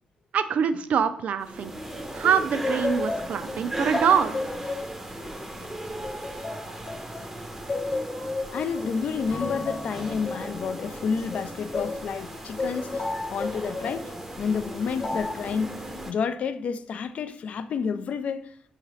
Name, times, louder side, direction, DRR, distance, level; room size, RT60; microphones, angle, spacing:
voice 1, 0.3-1.7 2.1-4.4, right 7 dB, 70° right, 0.3 m, -24 dB
sound 1, 1.4-16.1, right 1 dB, 15° right, 0.6 m, -37 dB
sound 2, 2.2-7.2 7.7-12.0 12.6-14.0 15.0-15.5, left 2 dB, 45° left, 0.7 m, -33 dB
voice 2, 8.5-13.0 13.3-14.1 14.4-15.8 16.1-18.5, left 6 dB, 65° left, 0.3 m, -30 dB
Acoustic guitar / Strum, 9.3-12.9, left 2 dB, 80° left, 0.9 m, -43 dB
5.7 x 2.8 x 3.0 m
cardioid pair, 95°, 2 cm